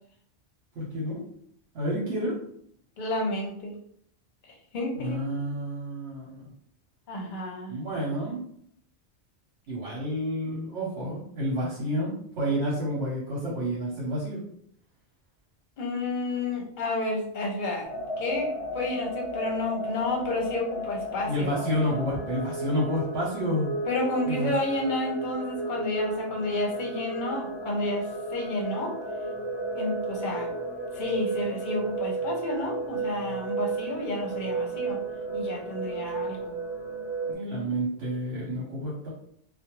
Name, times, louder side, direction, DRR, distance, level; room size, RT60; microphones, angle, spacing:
voice 1, 0.8-1.2 1.7-2.3 5.0-6.5 7.7-8.4 9.7-14.4 21.2-23.7 24.3-24.5 37.3-39.1, equal, 75° right, -5 dB, 1.0 m, -29 dB
voice 2, 3.0-3.8 4.7-5.2 7.1-7.8 15.8-17.9 18.2-21.7 23.9-28.9 29.8-30.5 30.9-35.0 35.3-36.5, left 2 dB, 50° left, 0 dB, 0.7 m, -30 dB
sound 1, 17.8-37.3, right 2 dB, 20° left, 0.9 m, -33 dB
2.5 x 2.0 x 2.9 m, 0.66 s
omnidirectional pair, 1.1 m